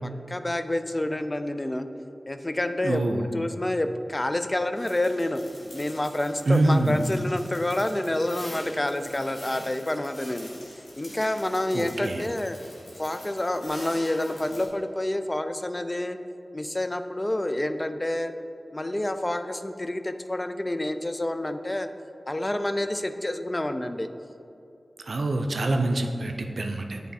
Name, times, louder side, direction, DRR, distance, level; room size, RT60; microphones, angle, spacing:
voice 1, 0.0-1.9 2.3-5.4 5.7-10.5 11.0-12.6 13.0-16.2 16.5-18.3 18.7-21.9 22.3-24.1, left 1 dB, 25° left, 9 dB, 0.3 m, -28 dB
voice 2, 2.8-3.2 6.5-7.0 11.7-12.2 25.1-27.0, right 2 dB, 80° right, 4 dB, 0.5 m, -25 dB
sound 1, 4.7-14.7, left 1 dB, 80° left, 1.4 m, -45 dB
8.4 x 3.4 x 4.1 m, 2.6 s
wide cardioid pair, 65°, 0 cm